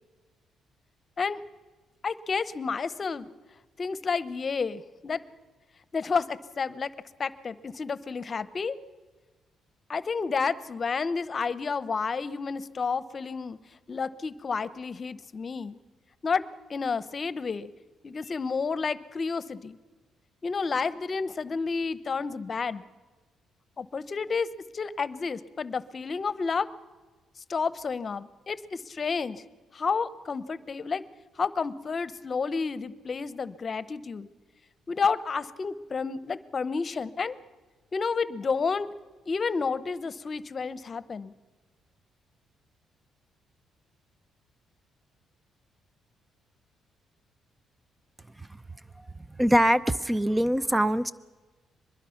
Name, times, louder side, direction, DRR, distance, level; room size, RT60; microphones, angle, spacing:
voice 1, 2.0-3.3 3.8-5.2 5.9-6.9 7.2-8.8 9.9-13.6 13.9-15.8 16.2-17.7 18.0-19.8 20.4-22.8 23.8-24.5 24.7-26.7 27.5-29.4 29.7-31.0 31.4-34.3 34.9-37.4 37.9-38.9 39.3-41.3, left 5 dB, 40° left, 15 dB, 0.9 m, -30 dB
voice 2, 49.4-51.1, equal, 15° right, 14 dB, 0.6 m, -23 dB
23.5 x 21.0 x 5.9 m, 1.3 s
cardioid pair, 90°, 0 cm